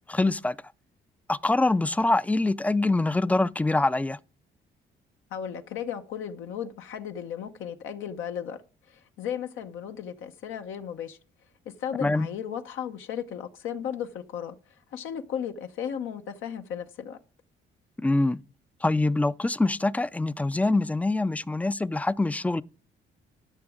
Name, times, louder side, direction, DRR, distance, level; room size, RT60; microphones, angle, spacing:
voice 1, 0.1-0.6 1.3-4.2 12.0-12.3 18.0-18.4 18.8-22.6, left 2 dB, 5° left, 0.3 m, -24 dB
voice 2, 5.3-8.6 8.9-11.2 11.8-14.6 14.9-17.2, left 8 dB, 85° left, 0.8 m, -35 dB
12.0 x 6.1 x 3.6 m
cardioid pair, 90°, 20 cm